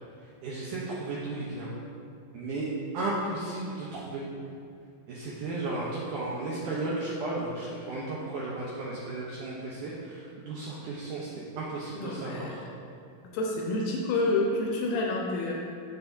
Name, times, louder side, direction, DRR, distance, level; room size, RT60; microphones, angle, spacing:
voice 1, 0.4-1.7 2.3-2.7 2.9-4.2 5.1-11.3 11.6-12.6, right 2 dB, 80° right, -6 dB, 1.8 m, -34 dB
voice 2, 11.9-12.6 13.3-15.5, left 2 dB, 80° left, -1 dB, 2.4 m, -28 dB
7.7 x 6.8 x 2.7 m, 2.4 s
omnidirectional pair, 4.5 m